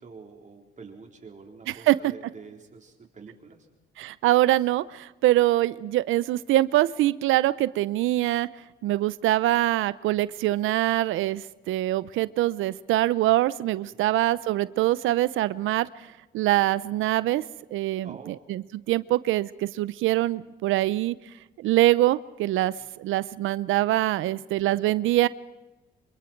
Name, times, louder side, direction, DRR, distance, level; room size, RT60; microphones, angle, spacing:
voice 1, 0.0-3.6 14.0-14.2 18.0-18.4 22.8-22.9, right 4 dB, 40° right, 2 dB, 4.2 m, -47 dB
voice 2, 1.7-2.1 4.0-8.5 8.8-16.1 16.3-17.4 17.7-21.2 21.6-25.3, right 15 dB, 85° right, 18 dB, 0.6 m, -24 dB
27.0 x 24.0 x 4.6 m, 1.1 s
cardioid pair, 90°, 20 cm